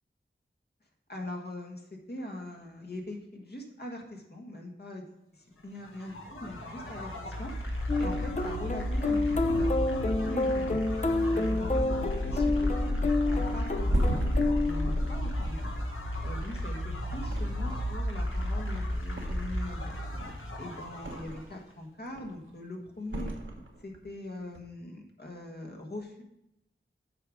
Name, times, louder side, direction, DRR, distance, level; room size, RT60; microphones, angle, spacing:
voice 1, 1.1-7.5 8.0-10.8 11.3-15.7 16.2-19.9 20.6-23.3 23.8-26.2, left 1 dB, 50° left, 1 dB, 1.5 m, -42 dB
sound 1, 5.8-21.5, equal, 80° left, 1.3 m, -33 dB
sound 2, 7.9-15.4, left 2 dB, 35° left, 0.7 m, -29 dB
Thump thud, 13.5-16.8 17.2-18.0 18.3-19.7 20.1-21.6 22.0-22.5 23.1-24.1 24.4-24.6, right 1 dB, 70° right, 1.1 m, -36 dB
7.6 x 4.9 x 5.0 m, 0.82 s
wide cardioid pair, 55°, 21 cm